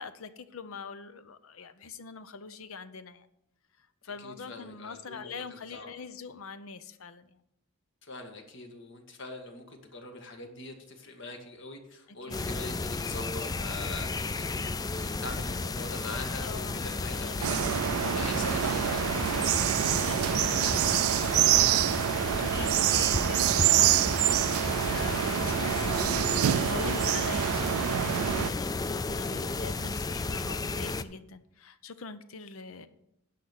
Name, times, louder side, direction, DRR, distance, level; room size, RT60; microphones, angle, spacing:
voice 1, 0.0-3.3 4.0-7.4 12.1-12.7 16.4-17.7 19.9-21.4 22.3-32.9, left 4 dB, 80° left, 13 dB, 0.7 m, -43 dB
voice 2, 4.2-5.9 8.0-14.7 15.0-21.7, left 3 dB, 60° left, 4 dB, 1.7 m, -43 dB
sound 1, 12.3-31.0, left 3 dB, 20° left, 0.3 m, -33 dB
sound 2, 17.4-28.5, right 12 dB, 85° right, 0.3 m, -26 dB
10.5 x 5.9 x 6.7 m, 0.79 s
head